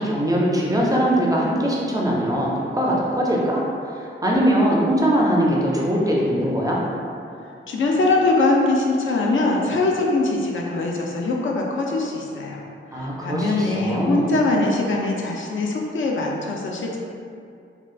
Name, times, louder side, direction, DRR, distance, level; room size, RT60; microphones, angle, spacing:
voice 1, 0.0-3.6 3.9-6.8 12.9-14.3, equal, 15° right, -4 dB, 0.4 m, -21 dB
voice 2, 7.7-12.6 12.9-17.0, left 2 dB, 70° left, -1 dB, 0.4 m, -22 dB
3.7 x 2.2 x 2.4 m, 2.5 s
wide cardioid pair, 150°, 21 cm